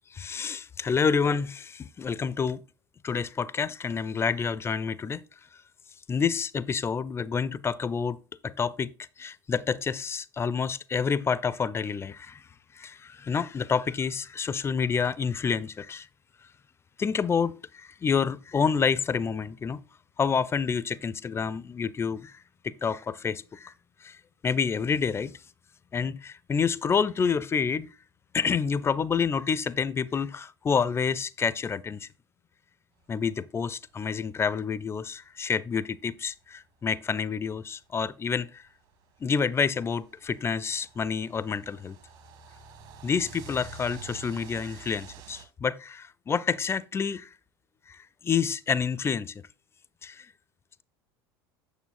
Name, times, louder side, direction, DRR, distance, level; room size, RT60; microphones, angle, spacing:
voice 1, 0.1-2.6 3.0-5.2 6.1-8.2 8.4-8.9 9.2-12.4 12.7-16.1 17.0-19.8 20.2-22.4 22.6-23.7 24.0-24.2 24.4-25.3 25.9-27.9 28.3-32.1 33.1-38.6 39.2-42.0 43.0-47.3 47.9-49.4 50.0-50.3, left 6 dB, 20° left, 0.4 m, -28 dB
sound 1, 35.1-35.2 36.3-36.4 37.8-45.4, right 5 dB, 55° right, 1.5 m, -48 dB
8.4 x 6.7 x 2.4 m
hypercardioid pair, 75°, 13 cm